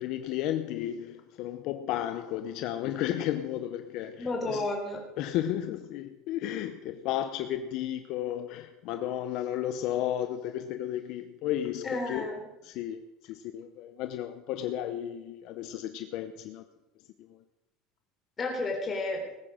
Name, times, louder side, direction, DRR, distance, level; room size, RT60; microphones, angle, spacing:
voice 1, 0.0-4.7 5.2-12.3 12.6-16.6 17.2-17.4, left 11 dB, 50° left, 9 dB, 0.8 m, -33 dB
voice 2, 4.2-5.0 11.8-12.4 18.4-19.2, left 2 dB, 20° left, 1 dB, 3.7 m, -31 dB
19.5 x 9.2 x 6.5 m, 0.95 s
cardioid pair, 170°, 0 cm